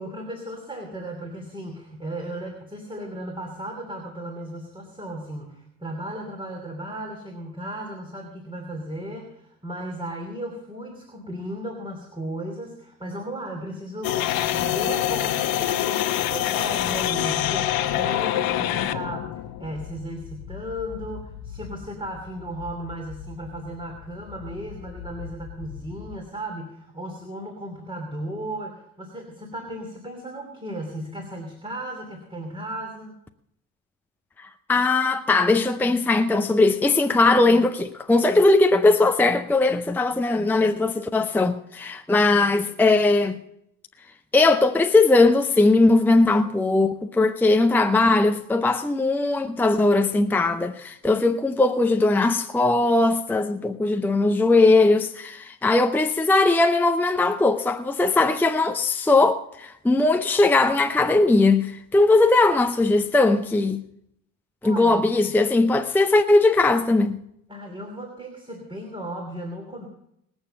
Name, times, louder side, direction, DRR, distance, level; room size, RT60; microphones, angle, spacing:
voice 1, 0.0-33.2 64.6-65.3 67.5-69.9, right 1 dB, 10° right, 2.9 m, -35 dB
sound 1, 14.0-26.2, left 12 dB, 60° left, 1.1 m, -28 dB
voice 2, 34.4-43.4 44.3-63.8 64.6-67.2, left 2 dB, 5° left, 0.7 m, -19 dB
19.5 x 7.2 x 6.8 m
supercardioid pair, 75°, 41 cm